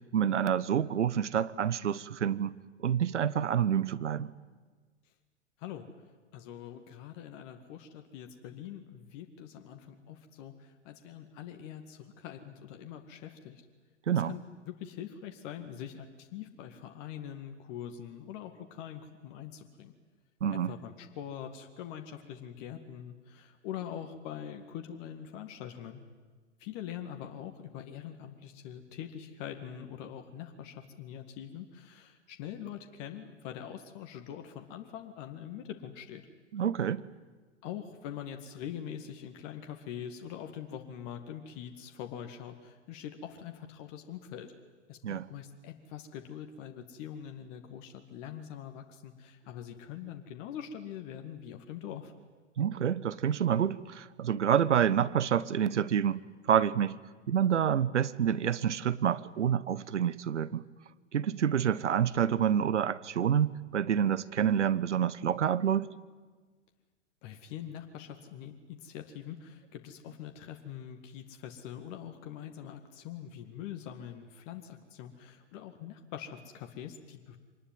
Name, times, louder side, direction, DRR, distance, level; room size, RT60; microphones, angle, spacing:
voice 1, 0.1-2.6 2.8-4.3 14.1-14.3 20.4-20.7 36.5-37.1 45.0-45.3 52.6-57.0 57.3-60.6 61.1-65.9, right 9 dB, 75° right, 17 dB, 1.0 m, -28 dB
voice 2, 6.3-13.7 14.1-19.9 20.5-26.0 26.6-36.2 37.6-44.5 44.9-52.1 67.2-77.4, left 9 dB, 40° left, 5 dB, 2.1 m, -43 dB
24.5 x 20.0 x 9.5 m, 1.4 s
figure-of-eight pair, 105°, 36 cm